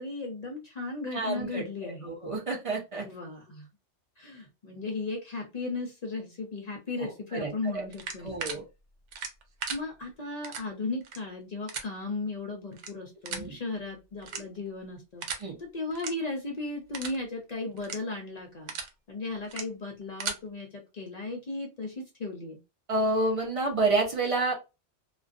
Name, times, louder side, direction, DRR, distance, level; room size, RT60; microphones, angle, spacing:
voice 1, 0.0-2.2 3.0-3.7 4.2-8.4 9.7-18.7 19.1-22.6, left 3 dB, 50° left, 2 dB, 0.5 m, -36 dB
voice 2, 1.1-3.1 7.0-7.8 8.2-8.6 13.3-13.6 14.3-14.4 15.4-15.6 22.9-24.5, right 2 dB, 35° right, 0 dB, 0.6 m, -29 dB
sound 1, 7.9-8.6 9.1-9.8 10.4-10.6 11.0-11.2 11.7-11.8 12.7-12.9 13.3-13.5 14.2-14.7 15.2-15.4 15.9-16.1 16.5-16.6 16.9-17.2 17.8-18.0 18.4-18.9 19.4-19.6 20.0-20.4, right 6 dB, 80° right, 0.9 m, -36 dB
2.4 x 2.2 x 2.4 m, 0.27 s
omnidirectional pair, 1.2 m